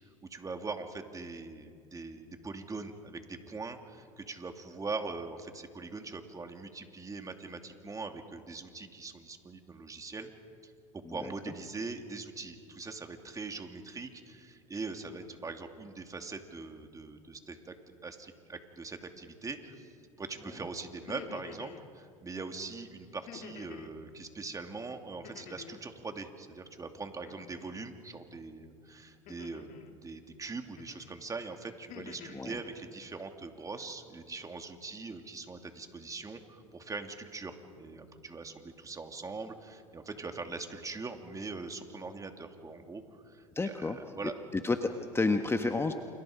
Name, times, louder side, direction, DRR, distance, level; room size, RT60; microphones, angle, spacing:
voice 1, 0.3-10.3 10.6-10.7 11.1-17.8 18.0-19.9 20.2-44.4, right 3 dB, 20° right, 5 dB, 2.7 m, -42 dB
sound 1, 20.9-21.8 23.3-23.9 25.2-25.9 27.2-27.8 29.3-29.9 30.8-31.1 31.6-32.4, left 9 dB, 50° left, 2.3 m, -49 dB
voice 2, 43.5-44.0 44.5-45.9, left 3 dB, 15° left, 6 dB, 1.4 m, -30 dB
29.5 x 29.0 x 5.1 m, 2.2 s
hypercardioid pair, 85°, 17 cm